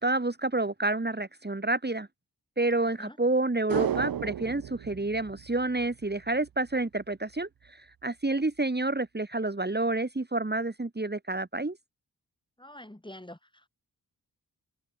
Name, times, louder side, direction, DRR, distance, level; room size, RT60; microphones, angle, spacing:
voice 1, 0.0-2.1 2.6-11.8, right 2 dB, 25° right, 2.9 m, -29 dB
voice 2, 2.8-3.2 12.6-13.7, left 1 dB, 10° left, 3.9 m, -47 dB
sound 1, 3.7-6.2 6.5-6.6, right 9 dB, 60° right, 0.8 m, -33 dB
cardioid pair, 40°, 39 cm